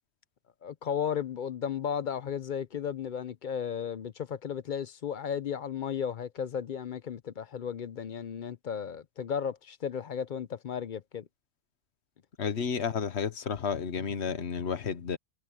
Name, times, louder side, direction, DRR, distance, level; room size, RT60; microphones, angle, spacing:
voice 1, 0.6-11.3, left 8 dB, 55° left, 0.7 m, -34 dB
voice 2, 12.4-15.2, left 6 dB, 90° left, 1.4 m, -31 dB
omnidirectional pair, 1.1 m